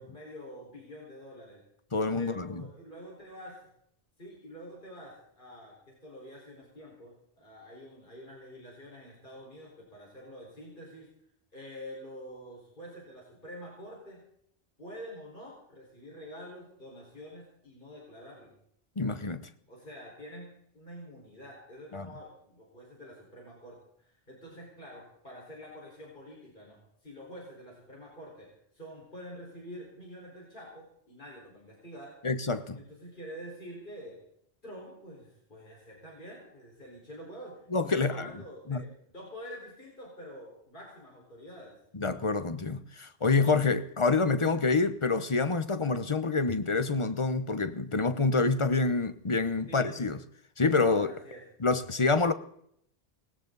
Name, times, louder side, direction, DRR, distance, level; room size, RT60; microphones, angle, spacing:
voice 1, 0.0-1.6 2.2-3.7 4.2-11.1 11.5-14.2 14.8-18.5 19.7-32.2 32.7-34.2 34.6-41.8 49.7-50.1 50.8-51.4, equal, 45° left, 5.0 m, -47 dB
voice 2, 1.9-2.6 19.0-19.5 21.9-22.1 32.2-32.8 37.7-38.3 38.7-38.8 41.9-50.2 50.6-51.1 51.6-52.3, left 3 dB, 30° left, 0.9 m, -27 dB
19.0 x 18.0 x 4.0 m
omnidirectional pair, 1.1 m